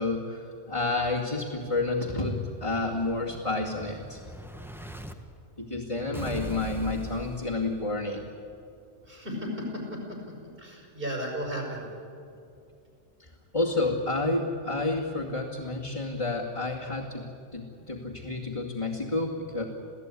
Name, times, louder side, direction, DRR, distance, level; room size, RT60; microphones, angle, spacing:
voice 1, 0.0-4.2 5.6-8.3 13.5-19.6, left 2 dB, 30° left, -5 dB, 2.5 m, -30 dB
Explosion, 1.8-5.1 6.1-8.2, right 2 dB, ahead, 1.4 m, -42 dB
voice 2, 9.1-10.2 10.6-11.8, equal, 50° right, 0 dB, 6.5 m, -34 dB
28.0 x 16.5 x 9.9 m, 2.5 s
omnidirectional pair, 1.2 m